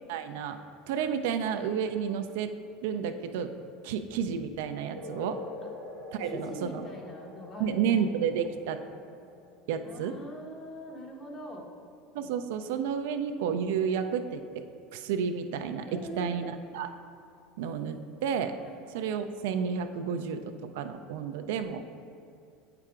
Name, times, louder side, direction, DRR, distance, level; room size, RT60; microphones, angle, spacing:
voice 1, 0.1-0.6 0.9-2.5 2.8-3.5 3.8-5.4 6.1-6.9 7.6-8.8 9.7-10.2 12.1-14.6 14.9-15.9 16.2-16.9 17.6-18.5 18.9-21.8, right 7 dB, 70° right, 8 dB, 0.3 m, -31 dB
sound 1, 4.9-11.9, left 2 dB, 75° left, 1.2 m, -46 dB
voice 2, 6.2-8.0 9.8-11.7 15.9-16.5 18.6-18.8, left 1 dB, 35° left, -1 dB, 1.2 m, -42 dB
8.6 x 5.7 x 2.4 m, 2.4 s
hypercardioid pair, 80°, 0 cm